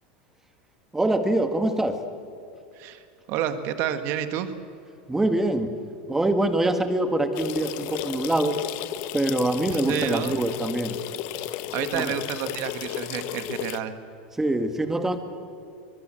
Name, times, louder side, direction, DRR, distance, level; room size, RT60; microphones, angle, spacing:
voice 1, 0.9-2.0 5.1-5.8 6.1-8.6 9.1-11.0 11.9-12.1 14.3-15.2, right 1 dB, 10° right, 8 dB, 1.9 m, -24 dB
voice 2, 3.3-4.5 9.7-10.4 11.7-14.0, right 10 dB, 50° right, 9 dB, 1.7 m, -29 dB
sound 1, 7.3-13.8, left 13 dB, 55° left, 1.2 m, -33 dB
23.5 x 22.0 x 7.7 m, 2.5 s
supercardioid pair, 135°, 5 cm